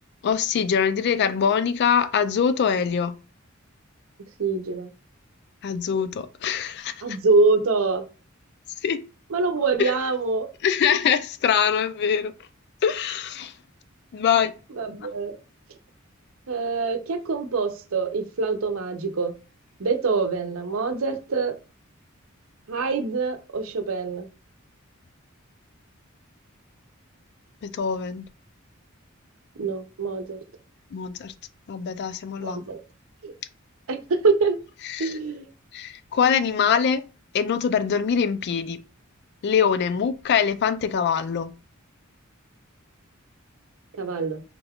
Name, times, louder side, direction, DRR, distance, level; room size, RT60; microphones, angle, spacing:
voice 1, 0.2-3.1 5.6-7.2 8.8-9.0 9.8-9.9 10.6-12.3 12.8-13.5 14.1-14.5 27.6-28.3 30.9-31.3 31.7-32.7 34.8-35.2 35.7-37.0 37.3-38.8 39.4-41.5, left 7 dB, 55° left, 0.4 m, -23 dB
voice 2, 4.4-4.9 7.0-8.0 9.3-10.5 14.8-15.4 16.5-19.3 19.8-21.6 22.7-24.3 29.6-30.4 32.4-32.8 33.2-33.3 33.9-34.6 35.0-35.5 44.0-44.4, right 4 dB, 85° right, 0.7 m, -25 dB
3.7 x 2.3 x 3.5 m
head